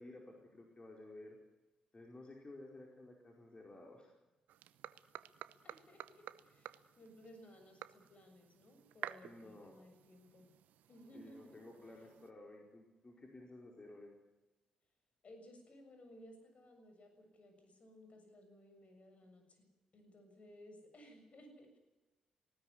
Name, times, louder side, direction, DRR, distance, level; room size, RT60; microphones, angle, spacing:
voice 1, 0.0-1.4 1.9-4.1 9.2-9.8 11.1-14.1, left 2 dB, 30° left, 0 dB, 4.7 m, -54 dB
sound 1, 4.5-12.3, right 12 dB, 70° right, 0.8 m, -53 dB
voice 2, 5.6-10.5 10.9-11.6 15.2-21.8, equal, 50° left, 6 dB, 7.1 m, -59 dB
19.0 x 16.5 x 9.8 m, 1.1 s
hypercardioid pair, 45°, 3 cm